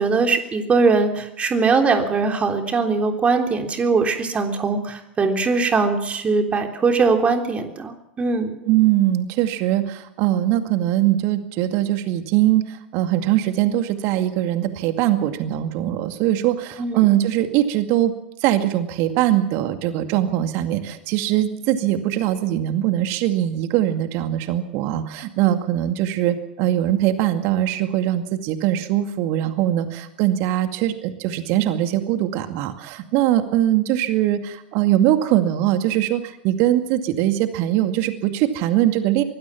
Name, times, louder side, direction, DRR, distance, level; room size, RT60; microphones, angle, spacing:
voice 1, 0.0-8.6 16.8-17.1, right 4 dB, 25° right, 4 dB, 3.5 m, -21 dB
voice 2, 8.6-18.1 18.4-39.2, right 13 dB, 50° right, 8 dB, 2.2 m, -21 dB
24.0 x 20.5 x 5.9 m, 0.82 s
figure-of-eight pair, 85°, 6 cm